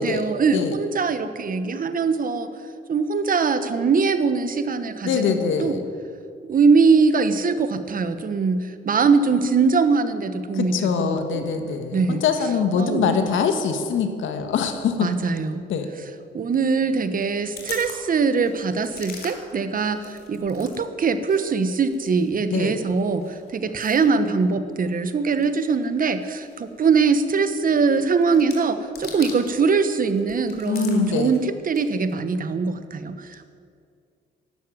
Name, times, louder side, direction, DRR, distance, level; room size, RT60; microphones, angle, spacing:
voice 1, 0.0-2.5 2.9-5.8 6.4-11.5 11.9-12.2 12.8-13.2 15.0-15.6 16.3-33.5, right 4 dB, 45° right, 10 dB, 1.2 m, -22 dB
voice 2, 5.0-5.8 10.5-15.1 15.7-15.9 22.5-22.7 30.6-31.3, left 6 dB, 80° left, 7 dB, 1.7 m, -23 dB
sound 1, 17.2-20.8 21.1-29.7 30.0-32.1, left 4 dB, 55° left, 3.4 m, -44 dB
12.5 x 12.0 x 9.4 m, 2.3 s
cardioid pair, 90°, 20 cm